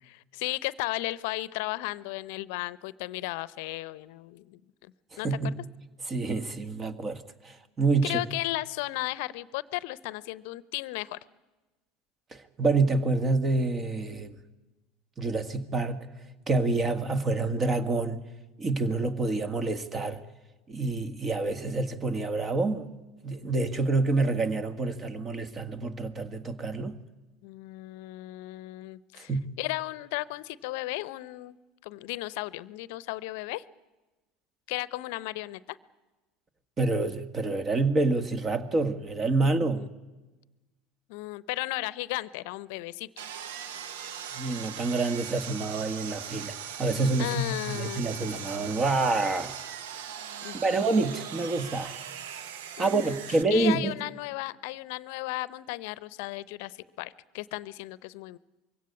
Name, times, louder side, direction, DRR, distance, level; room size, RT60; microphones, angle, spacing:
voice 1, 0.0-4.9 5.2-5.5 8.0-11.2 27.4-29.3 29.6-31.6 31.8-33.6 34.7-35.8 39.4-39.5 39.7-39.9 41.1-43.1 47.2-48.3 50.4-51.0 52.8-58.4, left 19 dB, 70° left, 0.7 m, -35 dB
voice 2, 5.2-5.6 6.1-8.2 12.3-14.3 15.2-16.1 16.5-18.2 18.6-20.2 20.7-22.9 23.2-27.0 29.3-29.4 36.8-39.8 44.3-49.5 50.5-52.0 52.8-53.9, right 3 dB, 30° right, 1.8 m, -27 dB
Sawing, 43.2-53.4, right 8 dB, 75° right, 1.0 m, -40 dB
22.5 x 17.0 x 9.7 m
hypercardioid pair, 80°, 0 cm